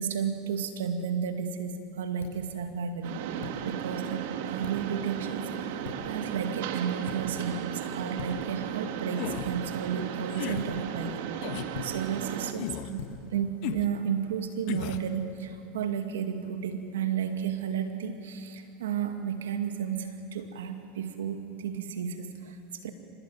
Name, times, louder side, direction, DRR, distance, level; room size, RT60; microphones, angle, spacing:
voice 1, 0.0-11.1 11.5-22.9, right 7 dB, 85° right, 6 dB, 2.3 m, -33 dB
sound 1, 1.0-14.5, left 7 dB, 85° left, 6.9 m, -46 dB
Mechanisms, 3.0-12.5, right 9 dB, 70° right, 1.7 m, -35 dB
sound 2, 9.1-9.5 10.3-10.6 11.4-11.7 12.6-12.9 13.6-13.9 14.7-15.1, left 14 dB, 60° left, 1.3 m, -35 dB
25.0 x 19.0 x 9.5 m, 2.7 s
hypercardioid pair, 105°, 0 cm